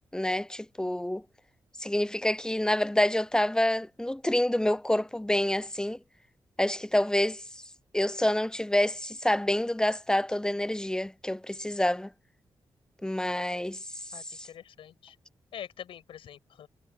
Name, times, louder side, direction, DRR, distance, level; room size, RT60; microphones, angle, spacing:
voice 1, 0.1-1.2 1.8-6.0 6.6-7.4 7.9-12.1 13.0-13.8, left 1 dB, 10° left, 0.6 m, -27 dB
voice 2, 14.1-15.2 15.5-16.7, left 10 dB, 90° left, 6.5 m, -45 dB
cardioid pair, 60°, 9 cm